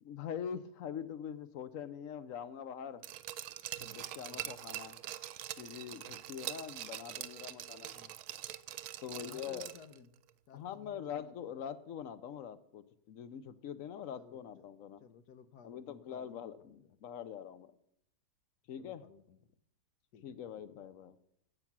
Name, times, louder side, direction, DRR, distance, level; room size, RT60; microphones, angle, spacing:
voice 1, 0.0-3.0 3.8-5.0 5.6-7.9 9.0-9.7 10.5-15.0 15.6-17.7 18.7-19.0 20.2-21.2, left 8 dB, 65° left, 14 dB, 1.0 m, -44 dB
Glass, 3.0-10.0 10.3-10.4, right 13 dB, 80° right, 1.1 m, -44 dB
voice 2, 9.1-10.2 10.5-11.6 14.1-14.7 15.0-17.0 18.8-19.4 20.1-20.8, left 7 dB, 85° left, 12 dB, 1.4 m, -58 dB
16.0 x 6.0 x 5.9 m, 0.74 s
omnidirectional pair, 1.6 m